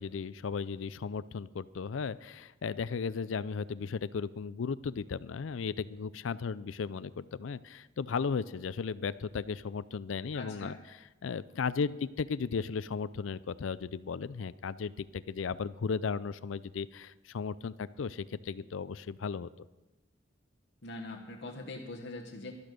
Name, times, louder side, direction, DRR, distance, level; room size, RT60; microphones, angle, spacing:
voice 1, 0.0-10.7 11.2-19.7, left 5 dB, 85° left, 17 dB, 0.4 m, -35 dB
voice 2, 10.3-10.8 20.8-22.6, left 2 dB, 60° left, 0 dB, 1.0 m, -42 dB
12.5 x 12.5 x 5.2 m, 1.0 s
head